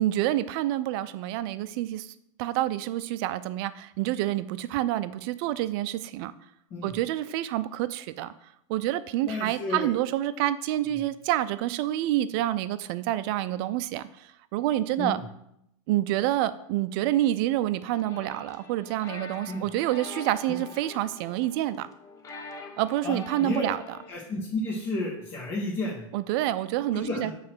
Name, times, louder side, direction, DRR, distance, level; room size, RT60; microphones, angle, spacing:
voice 1, 0.0-2.1 2.4-6.3 6.8-8.3 8.7-15.2 15.9-21.9 22.8-23.8 26.1-27.3, right 14 dB, 45° right, 13 dB, 0.4 m, -28 dB
voice 2, 9.3-9.9 15.0-15.2 19.5-19.7 20.5-20.6 23.0-23.7 24.1-26.0 26.9-27.3, left 2 dB, 35° left, -6 dB, 1.7 m, -32 dB
sound 1, 17.9-24.1, left 3 dB, 20° left, 0.7 m, -44 dB
7.2 x 3.2 x 6.1 m, 0.77 s
supercardioid pair, 140°, 17 cm